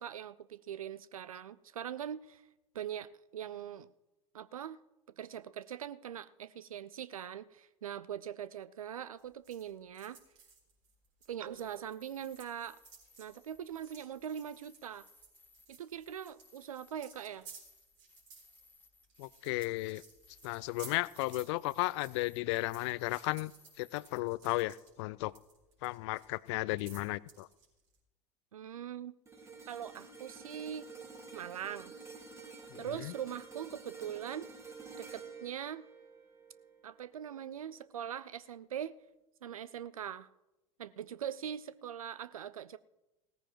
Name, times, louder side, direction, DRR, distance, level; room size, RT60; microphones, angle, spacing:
voice 1, 0.0-2.4 2.7-3.9 4.3-4.8 5.2-10.2 11.3-12.8 13.2-15.1 15.7-17.5 28.5-29.1 29.7-30.9 31.3-31.9 32.8-34.5 35.0-35.9 36.8-39.0 39.4-40.3 40.8-42.8, right 9 dB, 75° right, 0.4 m, -42 dB
sound 1, 9.2-12.0 12.2-28.0, right 5 dB, 55° right, 4.1 m, -57 dB
sound 2, 11.6-24.2, left 3 dB, 10° left, 1.2 m, -65 dB
voice 2, 19.2-20.0 20.4-23.5 23.8-25.3 25.8-27.5 32.7-33.1, left 21 dB, 50° left, 0.4 m, -34 dB
sound 3, 29.3-37.6 38.0-38.3, right 4 dB, 15° right, 2.0 m, -50 dB
17.5 x 14.5 x 3.0 m
figure-of-eight pair, 75°, 18 cm